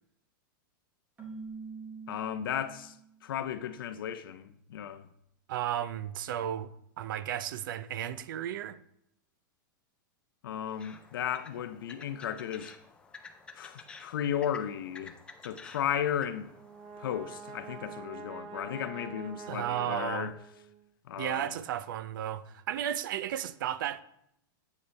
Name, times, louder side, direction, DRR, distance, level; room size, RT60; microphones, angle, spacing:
Keyboard (musical), 1.2-3.2, right 4 dB, 15° right, 1.0 m, -44 dB
voice 1, 2.1-3.0 3.2-5.1 10.4-12.7 13.5-15.1 15.4-16.5 17.0-20.3 21.0-21.6, left 9 dB, 85° left, 0.5 m, -35 dB
voice 2, 5.5-6.7 7.0-8.8 19.5-20.3 21.2-24.0, right 11 dB, 70° right, 0.4 m, -34 dB
sound 1, 10.7-18.0, left 4 dB, 10° left, 0.3 m, -52 dB
Brass instrument, 16.4-20.8, right 4 dB, 40° right, 0.8 m, -46 dB
8.3 x 3.2 x 4.0 m
supercardioid pair, 155°, 11 cm